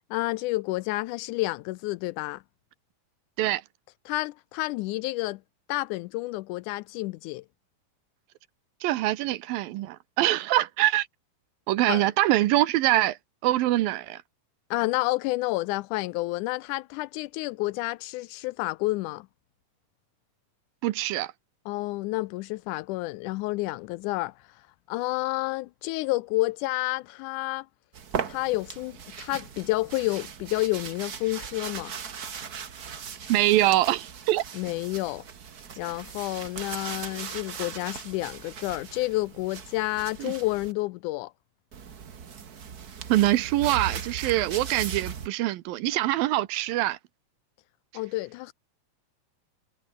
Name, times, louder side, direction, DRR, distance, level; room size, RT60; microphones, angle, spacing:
voice 1, 0.1-2.4 4.1-5.4 5.7-7.4 11.9-12.0 14.7-19.3 21.7-24.3 24.9-27.7 28.3-31.9 34.5-35.2 35.8-41.3 47.9-48.5, left 20 dB, 90° left, 1.8 m, -30 dB
voice 2, 8.8-11.1 11.7-13.2 13.4-14.2 20.8-21.3 33.3-34.4 40.2-40.3 43.1-47.0, right 15 dB, 85° right, 2.7 m, -24 dB
sound 1, 27.9-40.7 41.7-45.3, right 7 dB, 55° right, 1.0 m, -38 dB
omnidirectional pair, 4.1 m